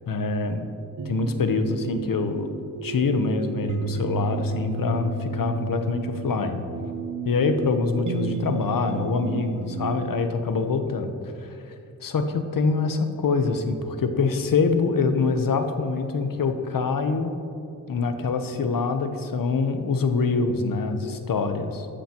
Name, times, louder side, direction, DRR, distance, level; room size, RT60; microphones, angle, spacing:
voice 1, 0.1-0.7 1.1-2.5 2.8-6.6 7.2-11.7 12.0-17.3 17.9-21.9, left 4 dB, 70° left, 7 dB, 1.0 m, -25 dB
sound 1, 1.0-10.3, right 3 dB, 60° right, 0.7 m, -32 dB
15.0 x 11.5 x 3.0 m, 2.6 s
cardioid pair, 70°, 35 cm